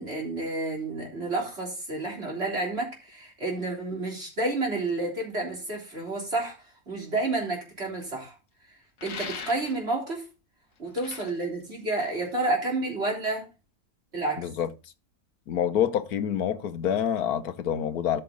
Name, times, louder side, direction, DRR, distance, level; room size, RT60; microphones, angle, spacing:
voice 1, 0.0-8.4 9.0-10.2 10.8-13.5 14.1-14.5, right 2 dB, 40° right, 3.8 m, -30 dB
sound 1, 9.0-10.0 10.8-12.5, left 6 dB, 60° left, 1.5 m, -40 dB
voice 2, 14.4-14.7 15.5-18.2, left 9 dB, 80° left, 1.3 m, -27 dB
13.5 x 5.9 x 3.9 m
omnidirectional pair, 1.6 m